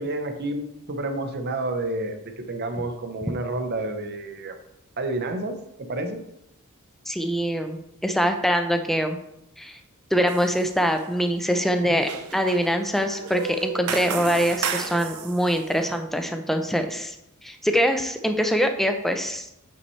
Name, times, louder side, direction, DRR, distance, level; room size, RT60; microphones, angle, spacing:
voice 1, 0.0-4.6 5.0-6.2, right 2 dB, 50° right, 7 dB, 0.8 m, -30 dB
voice 2, 7.1-9.2 9.6-9.8 10.1-17.1 17.4-19.5, equal, ahead, 6 dB, 0.5 m, -24 dB
sound 1, 10.3-10.7 11.0-15.6, right 6 dB, 90° right, 0.8 m, -33 dB
8.6 x 5.4 x 3.2 m, 0.82 s
head